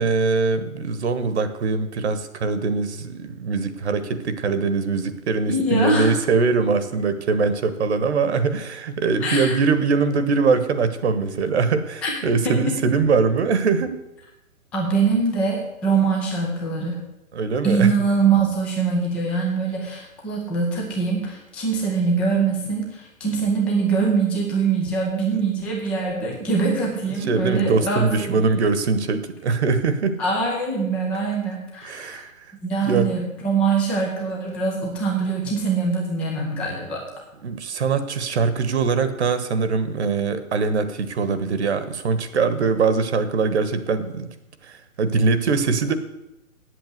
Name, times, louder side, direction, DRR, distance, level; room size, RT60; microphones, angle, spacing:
voice 1, 0.0-14.0 17.3-17.9 27.3-30.2 31.8-32.3 32.8-33.1 37.4-44.3 44.6-45.9, right 4 dB, 50° right, 12 dB, 1.3 m, -22 dB
voice 2, 5.5-6.1 9.2-9.6 12.0-12.1 12.4-12.8 14.7-17.0 17.6-28.6 30.2-32.2 32.6-37.0, right 4 dB, 5° left, -1 dB, 0.5 m, -23 dB
8.8 x 8.0 x 8.0 m, 0.91 s
figure-of-eight pair, 135°, 42 cm